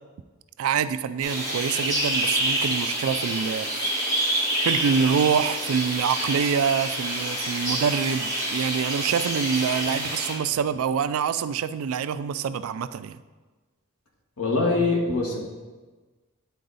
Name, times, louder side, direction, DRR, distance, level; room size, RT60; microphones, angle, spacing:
voice 1, 0.6-3.9 4.6-13.2, right 7 dB, 70° right, 13 dB, 0.3 m, -26 dB
sound 1, 1.2-10.3, right 1 dB, 15° left, 1.8 m, -27 dB
voice 2, 14.4-15.4, left 3 dB, 90° left, -1 dB, 1.4 m, -23 dB
9.3 x 3.8 x 4.0 m, 1.3 s
head